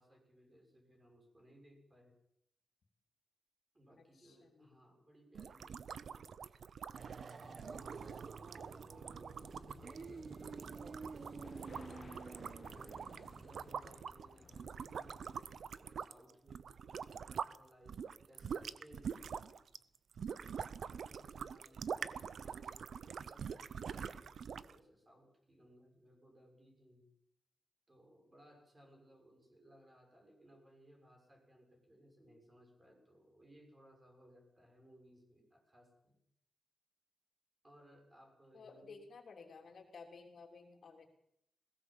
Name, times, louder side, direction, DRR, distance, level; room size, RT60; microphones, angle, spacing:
voice 1, 0.0-2.1 3.7-19.7 20.9-27.1 27.9-36.2 37.6-39.0, equal, 20° right, 2 dB, 6.2 m, -63 dB
voice 2, 4.2-4.7 38.5-41.1, left 4 dB, 55° left, 3 dB, 3.3 m, -55 dB
sound 1, 5.3-17.6 17.9-24.8, right 7 dB, 65° right, 0.7 m, -45 dB
sound 2, 6.9-13.7, right 4 dB, 45° right, 1.0 m, -50 dB
sound 3, 7.3-15.6, left 3 dB, 35° left, 1.7 m, -59 dB
20.5 x 17.5 x 7.5 m, 0.75 s
wide cardioid pair, 140°, 0 cm